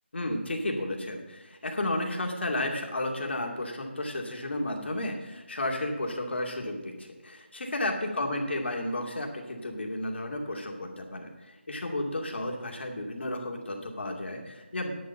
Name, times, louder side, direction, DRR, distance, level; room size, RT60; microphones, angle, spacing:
voice 1, 0.1-14.9, left 1 dB, 65° left, 1 dB, 2.5 m, -32 dB
10.5 x 7.0 x 7.1 m, 1.1 s
figure-of-eight pair, 165°, 7 cm